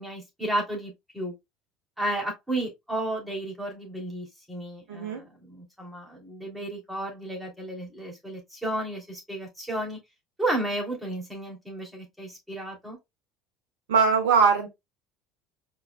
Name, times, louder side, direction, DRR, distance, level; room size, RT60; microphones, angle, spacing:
voice 1, 0.0-1.4 2.0-10.0 10.4-13.0, right 1 dB, 5° right, 3.0 m, -33 dB
voice 2, 4.9-5.2 13.9-14.7, right 5 dB, 70° right, 1.3 m, -21 dB
4.9 x 4.5 x 2.3 m
figure-of-eight pair, 65°, 0 cm